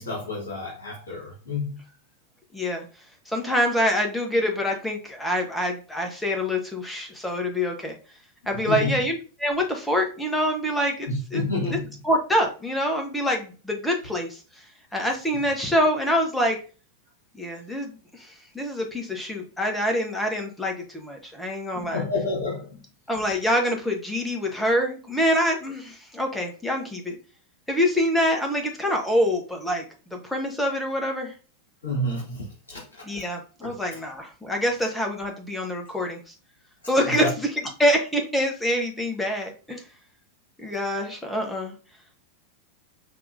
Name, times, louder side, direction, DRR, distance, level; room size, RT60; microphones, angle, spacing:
voice 1, 0.0-1.8 8.7-9.0 11.1-11.9 21.7-22.7 31.8-33.2 33.6-33.7 37.1-37.3, left 2 dB, 65° left, 1.8 m, -29 dB
voice 2, 2.5-2.9 3.3-7.9 8.5-11.4 11.7-11.8 12.0-14.4 14.9-16.6 17.3-22.0 23.1-27.2 27.7-29.8 30.1-31.3 33.0-36.2 36.9-39.8 40.6-41.7, equal, 5° left, 1.2 m, -25 dB
5.7 x 3.0 x 2.7 m
figure-of-eight pair, 90°, 0 cm